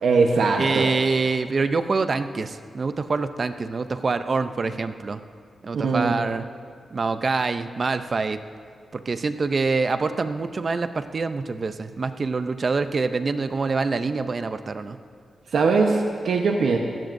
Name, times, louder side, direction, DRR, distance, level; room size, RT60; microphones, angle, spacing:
voice 1, 0.0-0.9 5.7-6.1 15.5-16.8, right 4 dB, 75° right, 2 dB, 1.0 m, -21 dB
voice 2, 0.6-5.2 5.6-6.4 6.9-8.4 8.9-15.0, right 4 dB, 40° right, 10 dB, 0.5 m, -25 dB
21.0 x 16.5 x 2.6 m, 2.1 s
wide cardioid pair, 125°, 0 cm